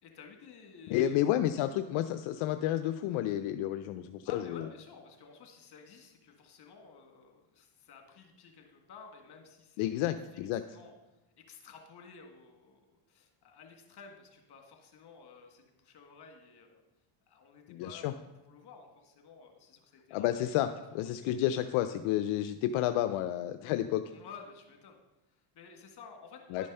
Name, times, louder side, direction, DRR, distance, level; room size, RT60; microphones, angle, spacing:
voice 1, 0.0-1.3 4.2-10.4 10.7-12.8 13.1-16.8 17.3-20.3 20.6-20.8 21.2-21.3 24.1-25.0 25.3-26.7, left 5 dB, 50° left, 3 dB, 1.9 m, -53 dB
voice 2, 0.9-4.6 9.8-10.6 17.7-18.1 20.1-20.7 20.9-24.0 26.5-26.6, left 12 dB, 75° left, 9 dB, 0.6 m, -30 dB
11.0 x 5.3 x 5.5 m, 1.0 s
supercardioid pair, 95°, 50 cm